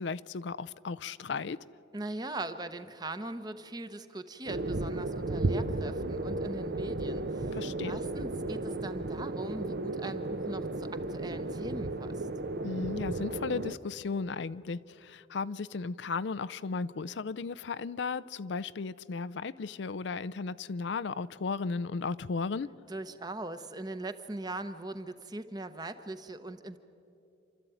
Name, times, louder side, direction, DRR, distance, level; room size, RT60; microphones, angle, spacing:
voice 1, 0.0-1.6 7.5-8.0 12.6-22.7, left 4 dB, 70° left, 17 dB, 0.5 m, -35 dB
voice 2, 1.9-7.6 7.8-12.3 22.9-26.8, right 2 dB, 20° right, 10 dB, 0.9 m, -40 dB
sound 1, 4.5-13.8, right 2 dB, 55° right, 0.8 m, -34 dB
28.5 x 13.0 x 9.2 m, 2.7 s
head